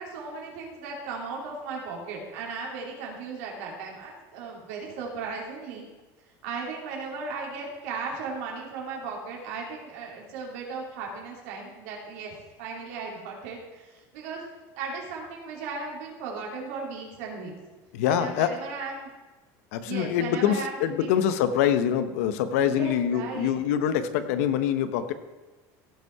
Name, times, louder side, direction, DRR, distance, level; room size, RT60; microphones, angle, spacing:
voice 1, 0.0-5.9 6.4-14.4 14.7-17.5 18.1-19.1 19.8-21.2 22.5-23.5, right 4 dB, 85° right, -1 dB, 3.2 m, -36 dB
voice 2, 17.9-18.5 19.7-25.1, left 9 dB, 85° left, 11 dB, 0.8 m, -25 dB
16.5 x 5.6 x 4.7 m, 1.2 s
cardioid pair, 170°, 8 cm